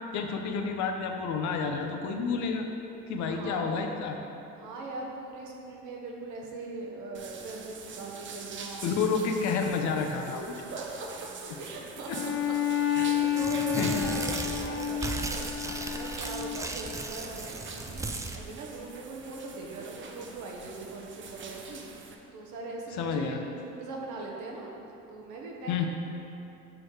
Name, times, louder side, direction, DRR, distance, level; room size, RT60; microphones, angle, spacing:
voice 1, 0.1-2.7 3.1-4.2 8.8-10.4 12.1-12.2 12.9-13.1 13.8-13.9 23.0-23.4 25.7-25.9, left 5 dB, 70° left, 4 dB, 0.8 m, -30 dB
voice 2, 3.2-4.0 4.6-8.9 10.2-11.3 11.6-12.3 12.9-24.7 25.1-25.9, right 3 dB, 75° right, -1 dB, 1.2 m, -41 dB
sound 1, 7.1-22.1, right 4 dB, 40° right, 0.7 m, -44 dB
Bowed string instrument, 12.1-16.8, left 10 dB, 40° left, 0.8 m, -30 dB
Tearing, 13.2-18.4, right 2 dB, 10° right, 0.4 m, -36 dB
6.2 x 4.5 x 4.7 m, 2.8 s
cardioid pair, 100°, 30 cm